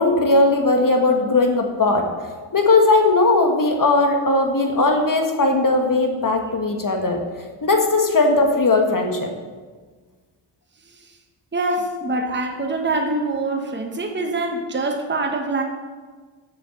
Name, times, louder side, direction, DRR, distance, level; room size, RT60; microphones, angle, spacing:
voice 1, 0.0-2.1 2.5-7.2 7.6-9.3, left 2 dB, 40° left, 3 dB, 1.6 m, -18 dB
voice 2, 11.5-15.6, right 2 dB, 20° right, 3 dB, 1.2 m, -24 dB
7.1 x 6.9 x 6.5 m, 1.4 s
cardioid pair, 50°, 49 cm